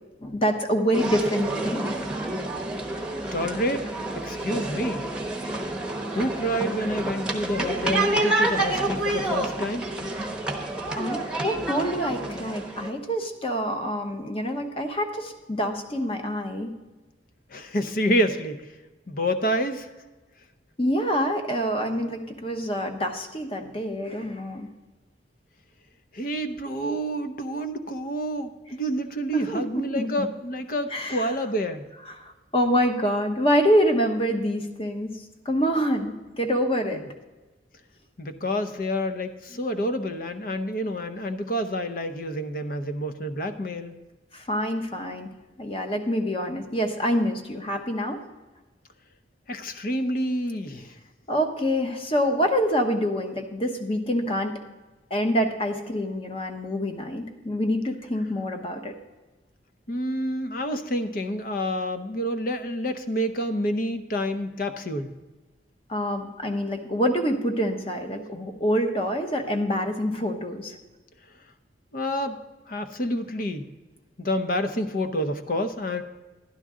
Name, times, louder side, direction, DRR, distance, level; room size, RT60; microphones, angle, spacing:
voice 1, 0.2-1.9 10.9-16.7 20.8-24.7 29.3-30.3 30.9-31.3 32.1-35.1 35.4-37.0 44.3-48.2 51.3-54.5 55.1-58.9 65.9-70.8, equal, 30° left, 5 dB, 1.0 m, -26 dB
sound 1, 0.9-12.9, right 2 dB, 5° right, 0.9 m, -28 dB
voice 2, 3.3-3.8 4.2-5.0 6.1-10.1 17.5-18.6 19.1-19.9 26.1-31.8 38.2-43.9 49.5-50.9 59.9-65.1 71.9-72.4 72.7-73.7 74.2-76.0, equal, 50° left, 9 dB, 0.7 m, -28 dB
12.0 x 10.5 x 3.7 m, 1.2 s
head